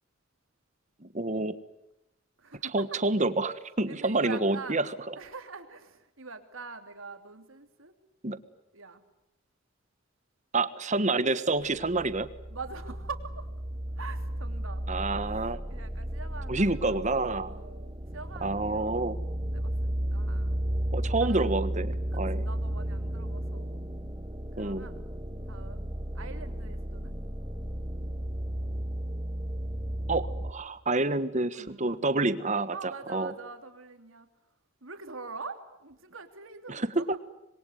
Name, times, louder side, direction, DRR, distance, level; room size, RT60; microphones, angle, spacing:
voice 1, 1.0-1.6 2.7-5.1 8.2-8.4 10.5-12.3 14.9-15.6 16.5-17.6 18.4-19.2 20.9-22.4 24.6-24.8 30.1-30.2 30.5-33.3 36.7-37.0, right 2 dB, 35° right, 12 dB, 1.5 m, -28 dB
voice 2, 2.4-3.0 3.9-4.8 5.2-7.9 8.7-9.0 12.5-13.5 14.0-14.8 15.3-19.2 19.5-20.5 21.2-21.5 22.1-22.2 22.4-23.8 24.5-25.1 25.5-25.9 26.1-27.1 30.2-30.3 31.5-32.1 32.7-34.3 34.8-37.2, right 4 dB, 80° right, 7 dB, 3.2 m, -44 dB
sound 1, 11.7-30.5, right 1 dB, 15° right, 1.8 m, -34 dB
26.5 x 22.5 x 9.5 m, 0.88 s
head